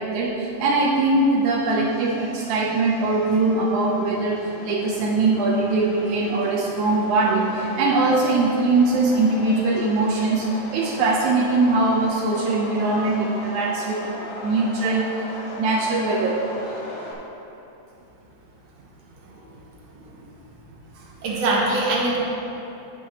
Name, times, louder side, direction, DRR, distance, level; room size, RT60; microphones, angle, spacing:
voice 1, 0.0-7.5 7.8-10.5 10.7-15.1 15.6-16.4 21.3-21.4, right 3 dB, 80° right, -3 dB, 1.8 m, -21 dB
Subway metro underground, 1.0-17.1, left 1 dB, 50° left, 1.7 m, -38 dB
voice 2, 21.2-22.2, right 2 dB, 55° right, -3 dB, 2.2 m, -22 dB
16.5 x 6.4 x 2.9 m, 2.9 s
omnidirectional pair, 4.1 m